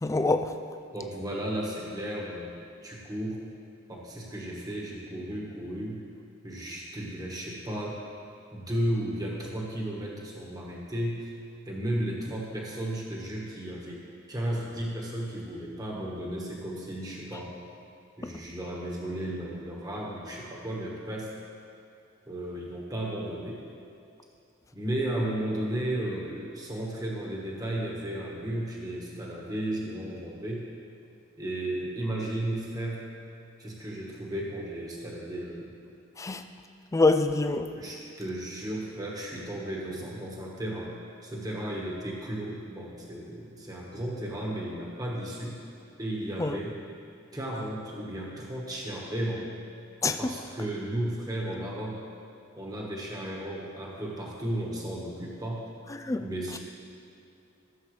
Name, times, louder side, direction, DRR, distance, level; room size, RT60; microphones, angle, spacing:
voice 1, 0.0-0.6 36.2-36.4 36.9-37.7 46.4-46.6 50.0-50.2 56.0-56.3, left 3 dB, 15° left, 8 dB, 0.3 m, -25 dB
voice 2, 0.9-3.4 3.9-6.0 6.4-8.0 8.5-11.3 11.6-14.0 14.3-17.6 18.2-21.3 22.3-23.6 24.7-30.6 31.4-33.1 33.6-35.7 37.8-41.0 41.2-45.6 46.0-46.8 47.3-49.5 50.2-52.0 52.6-55.7 56.2-56.6, right 1 dB, 20° right, -4 dB, 1.3 m, -34 dB
15.5 x 7.0 x 3.2 m, 2.6 s
head